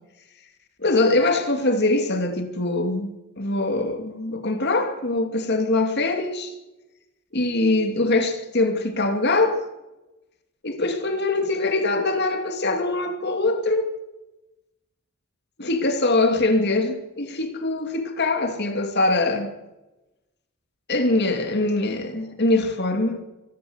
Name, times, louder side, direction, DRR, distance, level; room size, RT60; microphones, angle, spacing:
voice 1, 0.8-6.5 7.3-9.6 10.6-13.9 15.6-19.5 20.9-23.2, left 2 dB, 50° left, 2.7 m, -23 dB
25.0 x 13.0 x 8.1 m
head